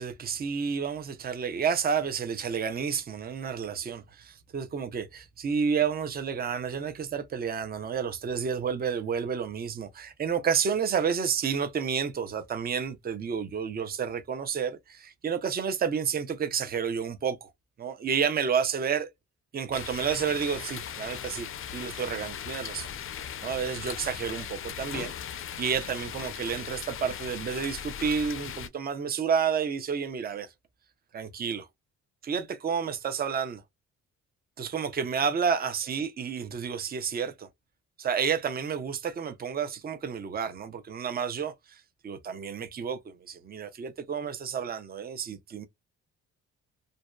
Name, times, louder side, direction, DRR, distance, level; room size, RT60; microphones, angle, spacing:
voice 1, 0.0-17.5 17.8-19.1 19.5-21.5 21.7-22.9 23.4-30.5 31.1-31.7 32.2-33.6 34.6-37.5 38.0-45.7, right 6 dB, 30° right, 0.6 m, -30 dB
sound 1, 19.7-28.7, left 9 dB, 45° left, 0.4 m, -38 dB
2.7 x 2.1 x 2.2 m
cardioid pair, 90°, 30 cm